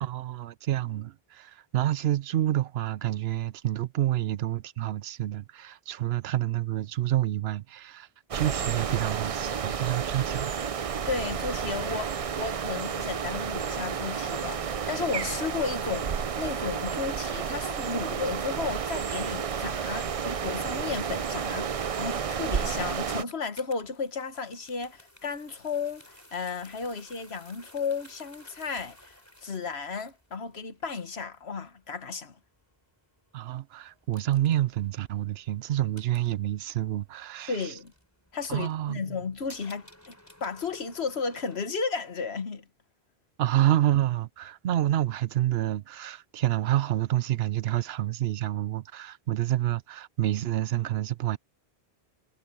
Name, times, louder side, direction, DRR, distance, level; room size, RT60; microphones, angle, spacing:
voice 1, 0.0-8.1 8.3-10.5 33.3-37.7 38.5-39.2 43.4-51.4, right 13 dB, 80° right, 0.9 m, -28 dB
sound 1, 8.3-23.2, right 7 dB, 45° right, 0.5 m, -31 dB
voice 2, 11.1-32.4 37.5-37.9 38.3-40.1 40.4-42.6, left 5 dB, 85° left, 1.7 m, -34 dB
sound 2, 22.1-41.6, equal, 15° left, 4.7 m, -56 dB
omnidirectional pair, 1.0 m